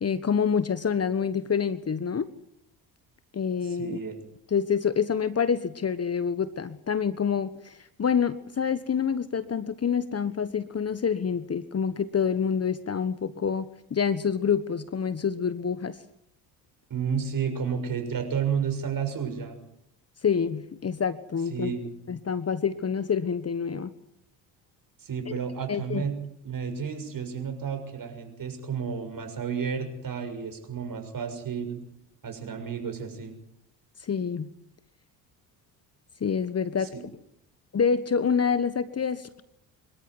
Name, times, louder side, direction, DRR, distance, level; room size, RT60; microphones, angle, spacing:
voice 1, 0.0-2.3 3.3-4.0 4.5-16.0 20.2-21.7 22.1-23.9 25.7-26.0 34.0-34.5 36.2-36.9 37.7-39.4, left 6 dB, 30° left, 14 dB, 1.3 m, -27 dB
voice 2, 3.6-4.2 16.9-19.6 21.5-21.9 25.0-26.1 26.4-31.8 32.2-33.3 36.8-37.0, right 7 dB, 40° right, 6 dB, 6.7 m, -31 dB
25.5 x 13.5 x 9.8 m, 0.78 s
hypercardioid pair, 60°, 50 cm